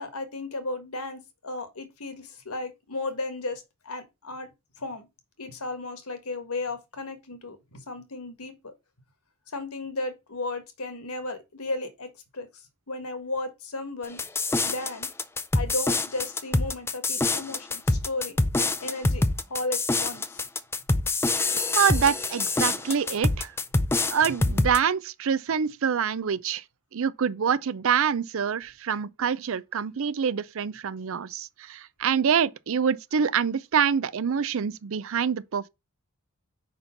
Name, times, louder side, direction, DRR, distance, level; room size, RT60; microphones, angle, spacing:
voice 1, 0.0-4.5 4.8-5.1 5.4-8.7 9.5-12.5 12.9-14.2 14.6-15.1 15.5-19.2 19.5-20.4, left 2 dB, 80° left, 1.5 m, -34 dB
sound 1, 14.2-24.8, left 2 dB, 10° left, 0.4 m, -25 dB
voice 2, 21.7-23.5 24.1-26.6 26.9-35.7, right 7 dB, 60° right, 0.5 m, -26 dB
5.2 x 4.3 x 5.7 m
head